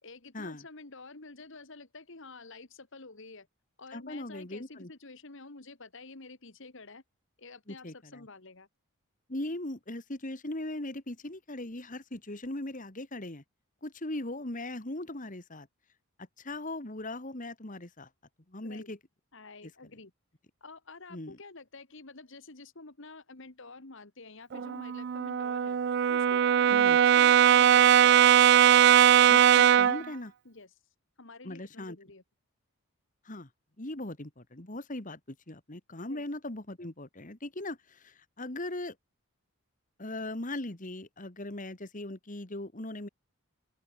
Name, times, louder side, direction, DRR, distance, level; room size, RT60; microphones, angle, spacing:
voice 1, 0.0-3.5 3.8-7.0 7.4-8.7 18.6-18.9 19.3-20.1 20.6-25.8 26.1-28.2 30.5-30.7 31.2-32.2 36.1-36.2, left 3 dB, 55° left, 1.7 m, -49 dB
voice 2, 3.9-4.9 7.7-8.2 9.3-13.4 13.8-15.7 16.4-18.1 18.5-19.0 21.1-21.4 26.7-27.0 29.3-30.3 31.4-32.0 33.2-33.5 33.8-39.0 40.0-43.1, left 1 dB, 35° left, 1.9 m, -39 dB
Brass instrument, 24.5-30.1, right 9 dB, 50° right, 0.3 m, -20 dB
open air
head